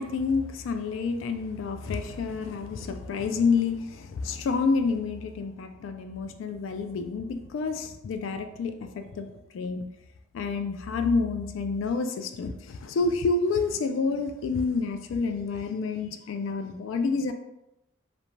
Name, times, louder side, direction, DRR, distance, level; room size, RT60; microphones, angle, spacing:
voice 1, 0.0-9.3 9.5-9.8 10.3-17.3, left 4 dB, 80° left, 7 dB, 0.3 m, -28 dB
2.5 x 2.2 x 3.0 m, 0.87 s
head